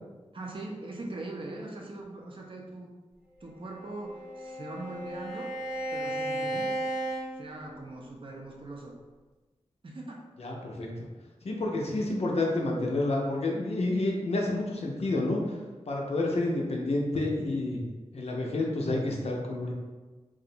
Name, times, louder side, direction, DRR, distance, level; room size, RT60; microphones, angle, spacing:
voice 1, 0.3-2.9 3.4-5.5 5.9-6.7 7.3-9.0 9.8-10.2, right 2 dB, 45° right, -1 dB, 0.5 m, -41 dB
Bowed string instrument, 3.7-8.2, right 1 dB, 10° right, 0.7 m, -35 dB
voice 2, 10.4-10.9 11.4-15.6 15.9-17.8 18.1-19.7, left 2 dB, 60° left, -1 dB, 0.5 m, -29 dB
2.4 x 2.0 x 2.7 m, 1.2 s
cardioid pair, 55°, 12 cm